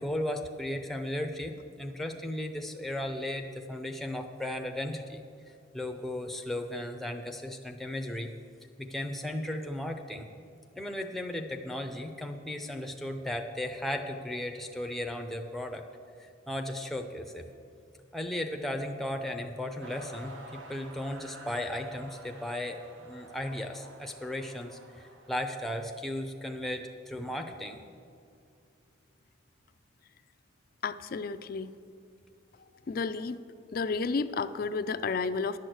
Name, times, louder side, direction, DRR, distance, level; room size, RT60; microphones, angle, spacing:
voice 1, 0.0-8.3 8.8-10.3 10.8-15.8 16.2-17.5 18.1-27.8, left 1 dB, ahead, 4 dB, 0.6 m, -36 dB
sound 1, 19.8-25.4, right 1 dB, 70° right, 1.2 m, -49 dB
voice 2, 30.8-31.7 32.9-33.4 33.7-35.6, left 4 dB, 45° left, 13 dB, 0.4 m, -31 dB
11.0 x 6.2 x 7.9 m, 2.4 s
head